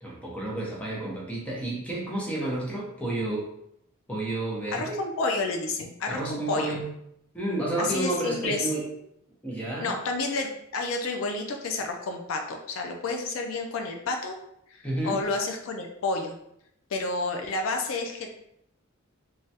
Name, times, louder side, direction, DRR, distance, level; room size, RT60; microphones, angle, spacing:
voice 1, 0.0-3.5 4.1-5.0 6.1-6.9 7.3-8.9 9.4-9.9 14.8-15.2, right 2 dB, 5° left, -4 dB, 0.7 m, -30 dB
voice 2, 4.7-6.8 7.8-8.7 9.8-14.4 14.7-16.4 16.9-18.3, left 3 dB, 70° left, 4 dB, 0.4 m, -30 dB
3.2 x 2.2 x 2.7 m, 0.76 s
head